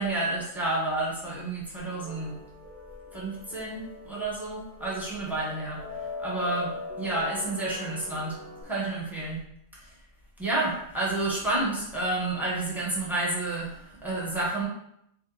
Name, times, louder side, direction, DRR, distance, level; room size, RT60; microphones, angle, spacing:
voice 1, 0.0-2.4 3.1-5.8 6.2-8.4 8.6-9.4 9.7-9.9 10.4-14.7, right 2 dB, ahead, -6 dB, 0.8 m, -30 dB
sound 1, 1.8-8.6, left 2 dB, 55° right, 1.0 m, -41 dB
2.8 x 2.4 x 3.8 m, 0.77 s
omnidirectional pair, 1.3 m